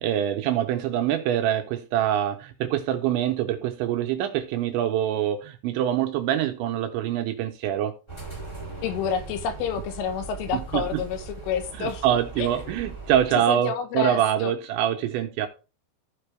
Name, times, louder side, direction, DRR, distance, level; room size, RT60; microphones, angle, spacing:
voice 1, 0.0-7.9 10.5-11.0 11.8-15.5, right 11 dB, 80° right, 2.8 m, -25 dB
sound 1, 8.1-13.3, right 4 dB, 30° left, 0.5 m, -39 dB
voice 2, 8.8-12.1 12.4-12.8 13.5-14.5, left 6 dB, 80° left, 3.6 m, -29 dB
14.5 x 5.3 x 3.3 m
omnidirectional pair, 5.8 m